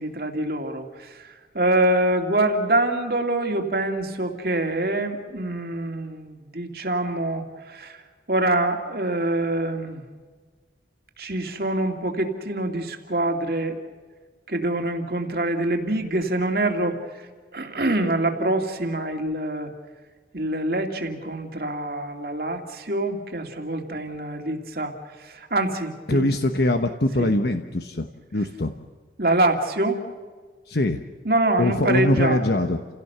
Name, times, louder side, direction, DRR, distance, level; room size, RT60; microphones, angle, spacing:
voice 1, 0.0-8.0 8.3-10.0 11.2-13.8 14.5-17.0 17.5-19.7 20.3-26.3 27.2-27.3 29.2-30.0 31.2-32.6, right 1 dB, 55° right, 4 dB, 2.6 m, -25 dB
voice 2, 26.1-28.7 30.7-31.0 31.6-32.8, left 1 dB, 65° left, 6 dB, 1.1 m, -22 dB
29.5 x 17.0 x 6.9 m, 1.4 s
head